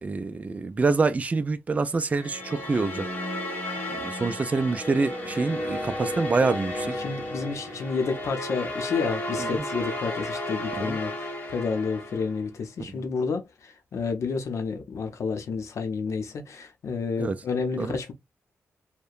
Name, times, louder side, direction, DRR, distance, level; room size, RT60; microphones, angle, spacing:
voice 1, 0.0-3.1 3.9-6.9 9.4-9.6 10.7-11.0 12.9-13.0 17.2-17.4 17.8-18.0, right 4 dB, 30° right, 0.3 m, -26 dB
sound 1, 2.1-12.5, left 1 dB, 30° left, 1.4 m, -33 dB
voice 2, 7.0-18.1, left 5 dB, 70° left, 0.7 m, -30 dB
2.8 x 2.1 x 2.4 m
wide cardioid pair, 105°, 5 cm